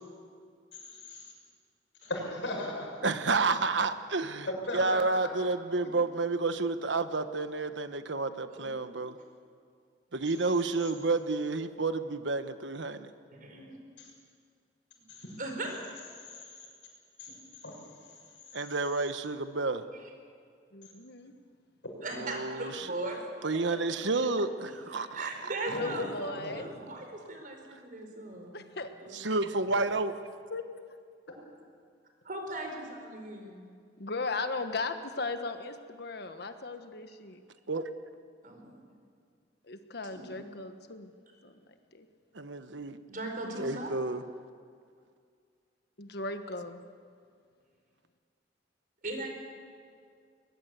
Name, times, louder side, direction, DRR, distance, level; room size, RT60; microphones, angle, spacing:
voice 1, 0.8-1.3 2.0-2.9 4.5-5.0 5.8-5.9 14.0-14.1 15.1-15.3 16.2-16.5 17.2-17.3 17.6-17.7 25.7-26.0 26.3-26.6, left 1 dB, 85° left, 1 dB, 6.6 m, -37 dB
voice 2, 3.0-4.5 4.7-9.2 10.1-13.1 18.5-19.8 22.2-22.9 23.4-25.5 29.1-30.1 37.7-37.8 42.3-43.0 43.6-44.2, right 3 dB, 85° right, 10 dB, 1.2 m, -30 dB
voice 3, 8.5-9.1 13.3-13.7 15.4-15.7 19.9-20.1 22.0-24.3 24.6-28.6 29.0-29.2 32.2-33.6 38.4-38.8 40.1-40.4 43.1-43.9 49.0-49.3, right 2 dB, 50° right, 3 dB, 4.8 m, -39 dB
voice 4, 20.7-21.3 25.8-26.7 28.5-28.9 29.7-29.8 30.1-30.2 30.5-30.6 34.0-37.4 39.6-41.1 41.4-41.6 41.9-42.1 46.0-46.8, left 3 dB, 60° left, 8 dB, 1.3 m, -37 dB
22.0 x 21.0 x 8.3 m, 2.2 s
head